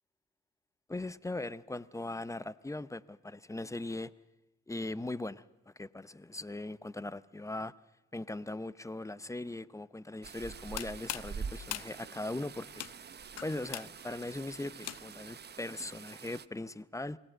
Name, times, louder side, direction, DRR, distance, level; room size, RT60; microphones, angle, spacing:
voice 1, 0.9-4.1 4.7-7.7 8.1-12.9 13.4-17.2, left 2 dB, 10° left, 0.7 m, -40 dB
sound 1, 10.2-16.5, right 6 dB, 35° right, 0.7 m, -46 dB
sound 2, 10.5-15.4, left 12 dB, 55° left, 0.7 m, -43 dB
23.5 x 17.5 x 7.8 m
cardioid pair, 90°, 30 cm